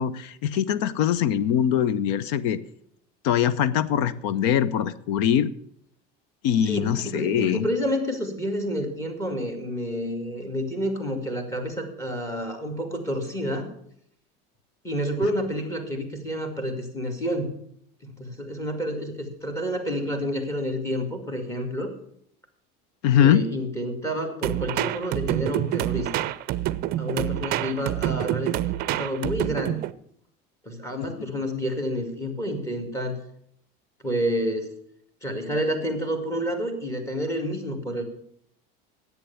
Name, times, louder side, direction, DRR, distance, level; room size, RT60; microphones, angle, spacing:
voice 1, 0.0-2.6 3.2-5.5 6.4-7.6 23.0-23.5, left 9 dB, 80° left, 17 dB, 0.7 m, -22 dB
voice 2, 6.7-13.7 14.8-17.5 18.0-21.9 23.2-26.3 27.0-29.9 30.6-33.2 34.0-34.7 35.2-38.0, equal, 15° left, 5 dB, 2.2 m, -29 dB
sound 1, 24.4-29.9, right 14 dB, 45° right, 0.5 m, -27 dB
10.5 x 8.4 x 7.0 m, 0.69 s
cardioid pair, 140°, 21 cm